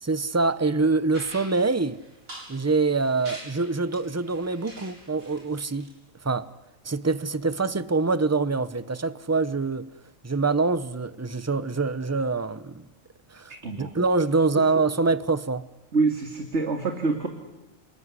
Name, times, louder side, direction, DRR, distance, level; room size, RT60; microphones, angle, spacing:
voice 1, 0.0-2.0 2.5-5.9 6.2-6.5 6.8-9.9 10.2-12.9 13.3-15.6, right 3 dB, 15° right, 0.8 m, -25 dB
sound 1, 1.1-5.9, right 1 dB, 70° right, 7.5 m, -45 dB
voice 2, 15.9-17.3, right 3 dB, 50° right, 2.6 m, -25 dB
30.0 x 20.5 x 9.8 m
omnidirectional pair, 1.5 m